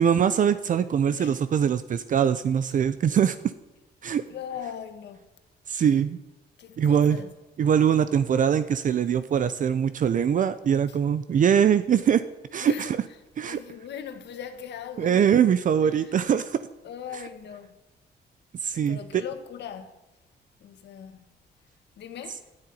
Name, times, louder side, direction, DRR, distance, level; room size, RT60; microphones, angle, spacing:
voice 1, 0.0-3.4 4.0-4.2 5.7-6.2 6.8-7.2 7.6-12.2 12.5-13.0 13.4-13.6 15.0-16.6 18.6-19.0, right 8 dB, 50° right, 0.6 m, -22 dB
voice 2, 4.3-5.3 6.6-7.3 10.9-11.0 12.6-12.9 13.4-15.3 15.8-16.2 16.8-17.8 18.8-20.0 20.6-21.3 22.0-22.4, left 8 dB, 85° left, 1.8 m, -39 dB
13.0 x 9.8 x 9.9 m
wide cardioid pair, 150°, 17 cm